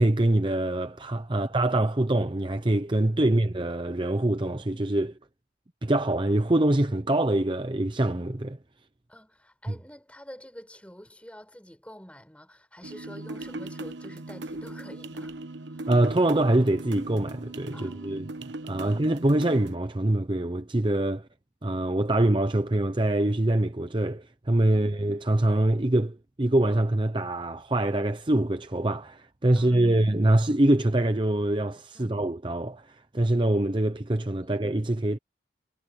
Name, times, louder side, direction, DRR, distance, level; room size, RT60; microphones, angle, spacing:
voice 1, 0.0-5.1 5.8-8.6 15.9-21.2 21.6-35.2, right 1 dB, 25° right, 0.7 m, -24 dB
voice 2, 9.1-15.9 17.7-18.2 18.8-19.1 21.1-21.3 24.7-24.9 29.6-30.0 31.9-32.2 34.4-34.6, equal, 5° left, 7.2 m, -48 dB
sound 1, 12.8-19.8, right 2 dB, 70° right, 1.0 m, -38 dB
head